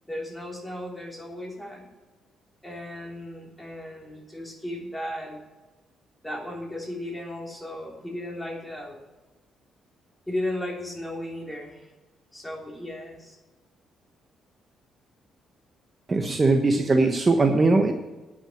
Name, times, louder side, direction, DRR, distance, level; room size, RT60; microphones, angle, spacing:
voice 1, 0.0-1.9 2.6-5.4 6.2-9.0 10.3-11.9 12.3-13.4, left 1 dB, 5° left, -1 dB, 3.2 m, -35 dB
voice 2, 16.1-17.9, right 3 dB, 30° right, 4 dB, 1.0 m, -20 dB
9.7 x 6.2 x 7.7 m, 1.2 s
cardioid pair, 90°, 0 cm